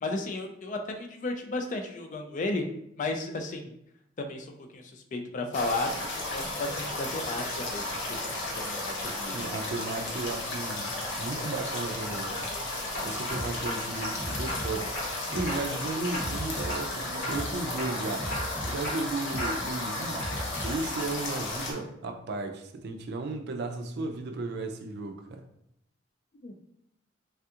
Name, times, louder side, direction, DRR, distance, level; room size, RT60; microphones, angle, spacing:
voice 1, 0.0-2.7 3.0-3.7 4.2-9.4 10.1-10.5 26.4-26.5, left 2 dB, 40° left, 0.4 m, -34 dB
sound 1, 5.5-21.7, left 2 dB, 75° left, 0.7 m, -34 dB
voice 2, 9.3-12.6 13.0-14.9 15.3-18.3 18.6-20.2 20.6-25.4, right 3 dB, 60° right, 0.4 m, -35 dB
sound 2, 12.0-12.4 12.9-14.2 14.5-15.1 15.5-15.8 16.1-16.9 17.2-17.5 17.8-19.8 20.2-20.7, equal, 60° left, 1.1 m, -37 dB
sound 3, 13.3-21.1, equal, 15° right, 1.0 m, -38 dB
3.3 x 2.3 x 2.7 m
head